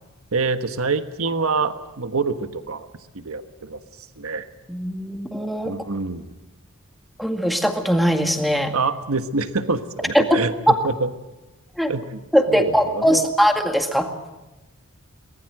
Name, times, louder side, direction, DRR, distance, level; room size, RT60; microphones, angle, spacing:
voice 1, 0.3-2.9 3.1-4.5 5.6-6.3 8.7-11.1 11.9-12.2 12.5-13.3, right 3 dB, 80° right, 9 dB, 1.3 m, -26 dB
voice 2, 4.7-5.7 7.2-8.7 10.1-10.2 10.7-10.8 11.8-11.9 12.3-14.1, equal, ahead, 4 dB, 2.0 m, -20 dB
23.5 x 20.0 x 7.8 m, 1.1 s
head